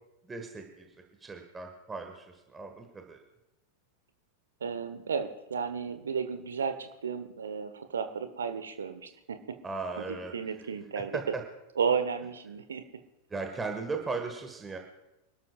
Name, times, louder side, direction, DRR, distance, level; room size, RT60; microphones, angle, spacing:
voice 1, 0.2-0.9 1.2-3.2 9.6-10.3 10.9-11.4 13.3-14.8, right 3 dB, 15° right, 3 dB, 1.7 m, -37 dB
voice 2, 4.6-9.6 10.0-11.2 11.8-12.8, right 6 dB, 70° right, 9 dB, 1.1 m, -33 dB
26.0 x 12.5 x 2.5 m, 0.93 s
figure-of-eight pair, 90°, 0 cm